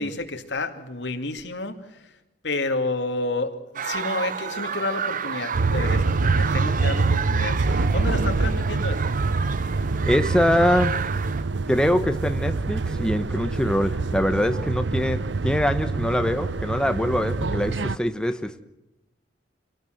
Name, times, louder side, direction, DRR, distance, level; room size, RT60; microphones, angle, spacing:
voice 1, 0.0-2.0 2.4-9.1, left 2 dB, 75° left, 6 dB, 2.5 m, -30 dB
sound 1, 3.7-11.4, right 6 dB, 50° right, 0.9 m, -31 dB
sound 2, 5.5-18.0, right 3 dB, 85° right, 0.7 m, -25 dB
voice 2, 10.0-11.0 11.7-18.6, equal, 5° left, 8 dB, 1.0 m, -23 dB
27.0 x 18.0 x 7.9 m, 0.96 s
head